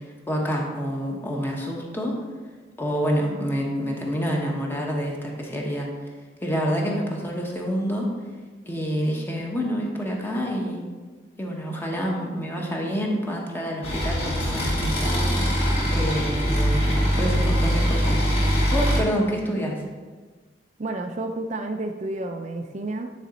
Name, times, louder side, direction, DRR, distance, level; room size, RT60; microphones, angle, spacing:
voice 1, 0.0-2.2 2.8-5.9 6.4-8.1 8.7-10.8 11.4-15.3 15.9-18.2 18.4-19.8, equal, 15° left, -1 dB, 1.0 m, -27 dB
sound 1, 13.8-19.0, equal, 35° left, 1.8 m, -22 dB
voice 2, 20.8-23.1, right 2 dB, 40° right, 4 dB, 0.4 m, -30 dB
9.1 x 4.1 x 4.1 m, 1.4 s
head